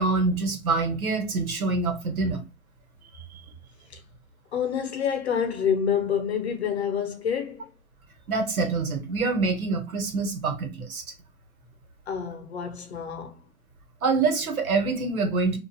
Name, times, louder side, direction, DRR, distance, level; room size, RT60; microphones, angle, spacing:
voice 1, 0.0-2.4 3.3-3.4 8.3-11.0 14.0-15.6, right 3 dB, 90° right, 1.1 m, -25 dB
voice 2, 4.5-7.7 12.1-13.4, left 7 dB, 50° left, 0.7 m, -28 dB
2.5 x 2.2 x 2.7 m
hypercardioid pair, 165°, 42 cm